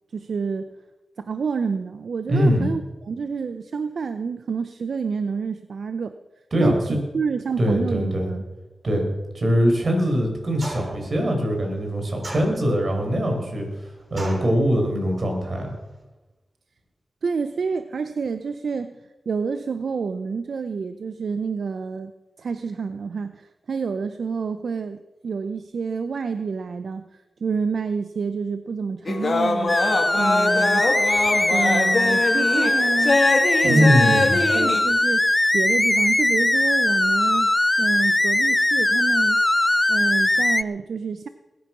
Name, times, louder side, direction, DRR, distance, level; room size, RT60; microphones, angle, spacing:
voice 1, 0.1-0.7 1.2-6.1 6.6-8.4 17.2-19.0 19.3-22.1 22.4-27.0 27.4-29.8 30.2-30.9 31.5-34.2 34.5-39.4 39.9-41.3, right 5 dB, 75° right, 10 dB, 0.6 m, -28 dB
voice 2, 2.3-2.7 6.5-7.0 7.6-8.3 8.8-9.1 9.3-15.7 33.6-34.4, equal, 55° right, 2 dB, 5.0 m, -22 dB
sound 1, 10.6-11.1 12.2-12.9 14.2-14.6, right 1 dB, 40° right, 3.9 m, -34 dB
sound 2, 29.1-34.8, left 3 dB, 55° left, 2.2 m, -23 dB
sound 3, 29.7-40.6, left 1 dB, 20° left, 0.4 m, -20 dB
20.5 x 9.4 x 6.1 m, 1.1 s
cardioid pair, 60°, 0 cm